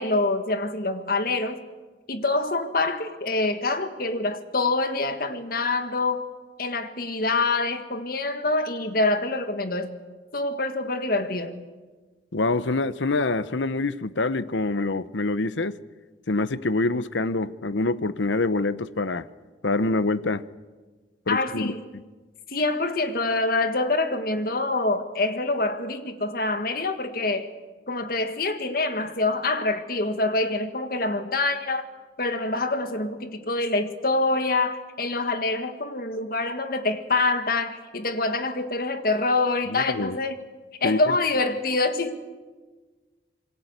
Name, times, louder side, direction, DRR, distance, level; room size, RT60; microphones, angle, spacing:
voice 1, 0.0-1.6 2.1-6.3 6.6-10.0 10.3-11.6 21.3-21.9 22.5-27.5 27.9-31.8 32.2-40.4 40.8-42.2, left 2 dB, 50° left, 8 dB, 1.8 m, -25 dB
voice 2, 12.3-15.8 16.3-19.3 19.6-20.5 21.3-21.7 39.7-40.2 40.8-41.0, left 2 dB, 85° left, 15 dB, 0.9 m, -25 dB
26.5 x 23.0 x 8.2 m, 1.3 s
head